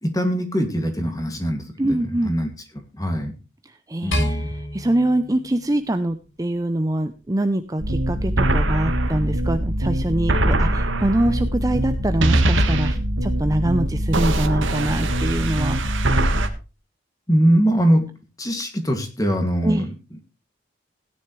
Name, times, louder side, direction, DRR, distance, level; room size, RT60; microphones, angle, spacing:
voice 1, 0.0-2.5 2.9-3.3 4.0-4.5 17.3-18.1 18.4-19.9, equal, 20° left, 5 dB, 2.3 m, -22 dB
voice 2, 1.8-2.3 3.6-16.0 19.6-19.9, right 1 dB, 20° right, 8 dB, 0.6 m, -24 dB
sound 1, 4.1-6.5, equal, 75° left, 5.6 m, -28 dB
sound 2, 7.8-16.5, right 1 dB, 80° right, 1.6 m, -21 dB
17.0 x 10.0 x 3.2 m, 0.32 s
head